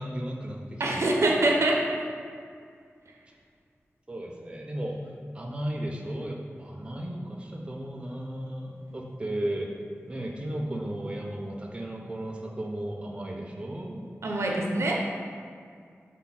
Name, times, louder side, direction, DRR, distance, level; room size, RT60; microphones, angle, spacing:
voice 1, 0.0-1.2 4.1-5.0 5.3-9.7 10.1-14.0, right 1 dB, 20° right, -1 dB, 0.4 m, -35 dB
voice 2, 0.8-1.8 14.2-15.2, right 2 dB, 70° right, -1 dB, 0.5 m, -24 dB
4.2 x 2.1 x 3.9 m, 2.2 s
wide cardioid pair, 90°, 5 cm